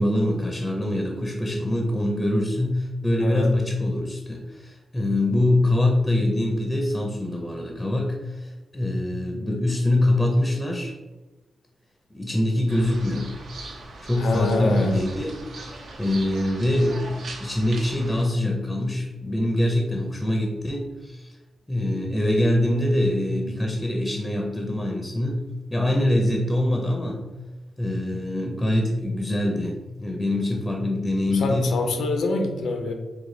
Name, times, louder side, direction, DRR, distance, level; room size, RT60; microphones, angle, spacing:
voice 1, 0.0-10.9 12.1-13.4 14.0-15.4 16.0-21.4 21.7-25.4 25.7-27.2 27.8-31.8, left 1 dB, 10° left, 1 dB, 0.5 m, -24 dB
voice 2, 3.2-3.5 14.2-15.0 31.3-32.9, left 2 dB, 90° left, 4 dB, 0.6 m, -25 dB
sound 1, 12.7-18.2, right 2 dB, 70° right, 0.8 m, -40 dB
4.7 x 2.3 x 3.8 m, 1.1 s
wide cardioid pair, 120°, 0 cm